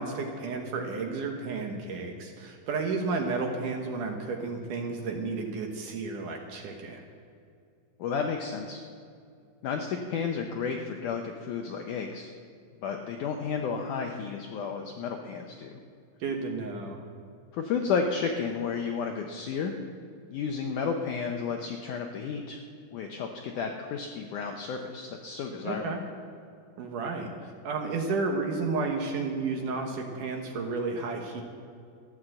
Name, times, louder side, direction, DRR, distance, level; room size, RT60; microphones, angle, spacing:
voice 1, 0.0-7.0 16.2-17.0 25.6-26.0 26.8-31.4, right 4 dB, 65° right, 2 dB, 2.3 m, -32 dB
voice 2, 8.0-8.8 9.6-12.3 12.8-15.8 17.5-19.8 20.3-22.6 22.9-25.8, left 5 dB, 80° left, 3 dB, 1.8 m, -32 dB
14.5 x 11.0 x 7.8 m, 2.4 s
omnidirectional pair, 4.6 m